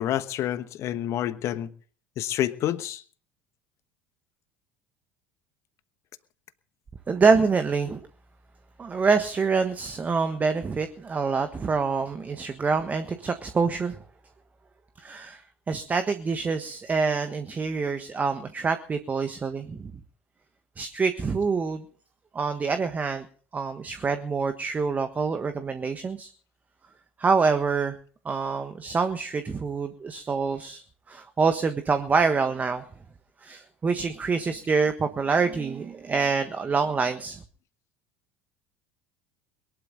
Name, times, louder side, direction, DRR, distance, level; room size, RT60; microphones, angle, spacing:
voice 1, 0.0-1.7 2.2-3.0, left 12 dB, 45° left, 13 dB, 1.2 m, -28 dB
voice 2, 7.1-8.0 8.8-14.0 15.0-19.9 20.8-21.8 22.3-23.2 23.5-26.3 27.2-28.0 28.2-30.8 31.1-32.8 33.4-37.4, right 4 dB, 25° right, 8 dB, 1.4 m, -26 dB
22.5 x 12.0 x 4.0 m, 0.43 s
figure-of-eight pair, 70°, 7 cm